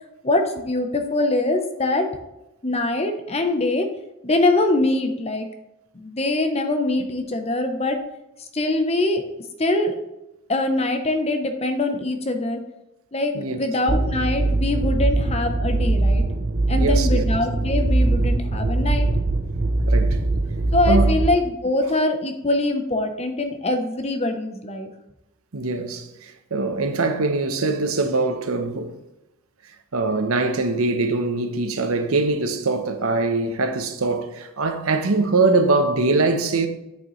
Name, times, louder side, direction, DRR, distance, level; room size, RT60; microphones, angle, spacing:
voice 1, 0.2-2.1 2.6-3.9 4.2-5.5 5.9-8.0 8.4-9.2 9.6-9.9 10.5-12.6 13.1-16.2 16.7-19.1 20.7-24.9, left 2 dB, 30° left, 0.7 m, -23 dB
sound 1, 13.9-21.3, right 2 dB, 45° right, 0.6 m, -21 dB
voice 2, 16.8-17.2 19.9-20.2 20.9-21.1 25.5-29.0 29.9-36.7, right 3 dB, 80° right, 0.9 m, -22 dB
8.3 x 6.8 x 3.1 m
head